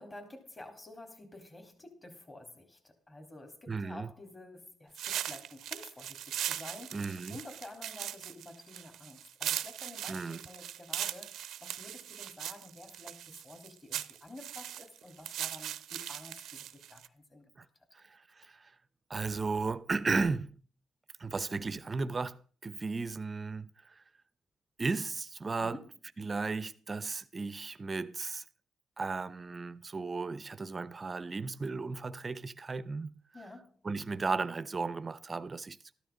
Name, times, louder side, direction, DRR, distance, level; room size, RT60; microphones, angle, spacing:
voice 1, 0.0-17.7 25.6-25.9 33.3-33.8, left 2 dB, 25° left, 3.9 m, -50 dB
voice 2, 3.7-4.1 6.9-7.4 10.1-10.4 17.6-17.7 17.9-18.7 19.1-20.6 21.2-24.0 24.8-25.8 26.2-28.4 29.0-33.1 33.8-35.8, right 4 dB, 30° right, 0.8 m, -35 dB
sound 1, 4.9-17.1, right 11 dB, 75° right, 0.8 m, -39 dB
13.5 x 12.5 x 3.9 m
cardioid pair, 90°, 0 cm